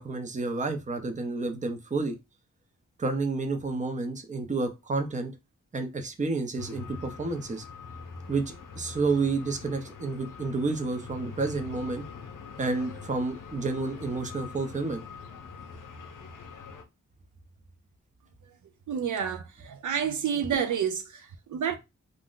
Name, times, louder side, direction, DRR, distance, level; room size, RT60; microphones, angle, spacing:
voice 1, 0.0-2.2 3.0-5.3 5.7-7.6 8.3-8.4 8.7-12.0 12.6-15.0, right 3 dB, 25° right, 0.6 m, -30 dB
sound 1, 6.6-16.8, left 5 dB, 85° left, 0.6 m, -43 dB
voice 2, 18.9-21.8, right 8 dB, 70° right, 0.4 m, -29 dB
2.5 x 2.1 x 3.7 m
wide cardioid pair, 90°, 31 cm